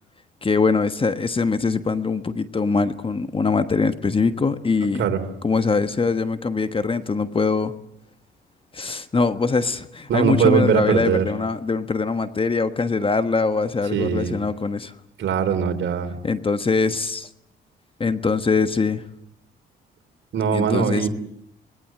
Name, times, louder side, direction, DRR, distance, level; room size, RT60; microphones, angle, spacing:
voice 1, 0.4-5.0 5.4-7.7 8.7-14.9 16.2-17.3 18.0-19.0 20.5-21.1, left 4 dB, 25° left, 11 dB, 1.3 m, -22 dB
voice 2, 10.1-11.3 13.9-14.3 15.2-16.2 20.3-21.1, right 7 dB, 70° right, 6 dB, 3.6 m, -21 dB
27.0 x 19.5 x 7.7 m, 0.76 s
cardioid pair, 90°, 20 cm